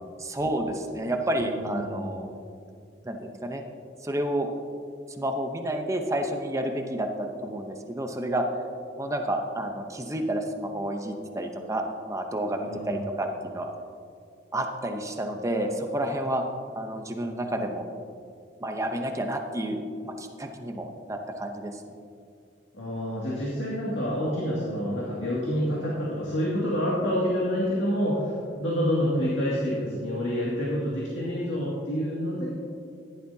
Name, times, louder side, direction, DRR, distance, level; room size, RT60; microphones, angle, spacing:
voice 1, 0.2-2.3 3.0-3.6 4.0-4.5 5.2-8.4 9.0-11.8 12.1-13.3 13.5-13.7 14.5-16.4 16.8-17.8 18.6-21.8, right 1 dB, 15° right, 4 dB, 0.8 m, -30 dB
voice 2, 1.3-2.3 12.6-13.0 22.7-32.5, equal, 75° left, -6 dB, 2.2 m, -28 dB
14.5 x 11.0 x 2.8 m, 2.3 s
head